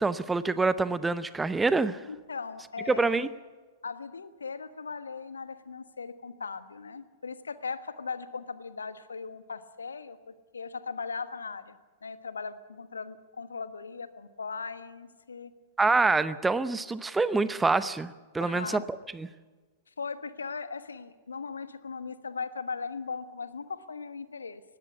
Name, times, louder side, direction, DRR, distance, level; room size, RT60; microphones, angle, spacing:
voice 1, 0.0-2.0 2.9-3.3 15.8-18.8 19.1-19.3, right 3 dB, 10° right, 15 dB, 0.8 m, -26 dB
voice 2, 2.1-3.3 3.8-11.8 12.0-15.5 18.4-18.9 20.0-24.6, left 5 dB, 75° left, 13 dB, 1.3 m, -38 dB
19.5 x 16.0 x 8.5 m, 1.3 s
figure-of-eight pair, 100°, 0 cm